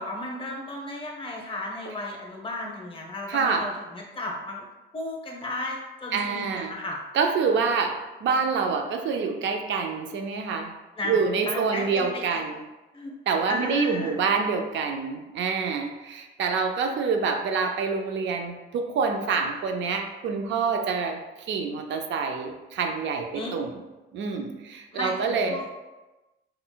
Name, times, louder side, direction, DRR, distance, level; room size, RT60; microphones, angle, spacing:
voice 1, 0.0-4.6 4.9-7.0 11.0-11.2 11.4-12.4 12.9-13.1 13.5-14.2 23.3-23.5 24.9-25.7, left 1 dB, 25° left, -1 dB, 0.7 m, -34 dB
voice 2, 3.3-3.6 6.1-6.7 7.1-10.7 11.0-12.6 13.3-21.2 21.5-23.7 24.1-25.6, right 5 dB, 70° right, 4 dB, 0.4 m, -26 dB
3.7 x 2.2 x 2.2 m, 1.1 s
cardioid pair, 90°, 20 cm